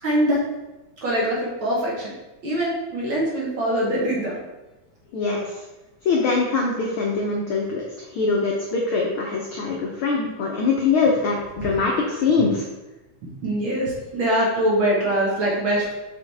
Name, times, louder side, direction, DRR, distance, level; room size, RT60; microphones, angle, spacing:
voice 1, 0.0-0.4 1.0-2.1 2.4-4.4 12.4-12.5 13.4-15.9, right 1 dB, 50° right, -5 dB, 1.7 m, -23 dB
voice 2, 5.1-5.6 6.0-12.7, left 4 dB, 85° left, -1 dB, 1.1 m, -23 dB
6.8 x 4.6 x 3.5 m, 1.0 s
omnidirectional pair, 3.4 m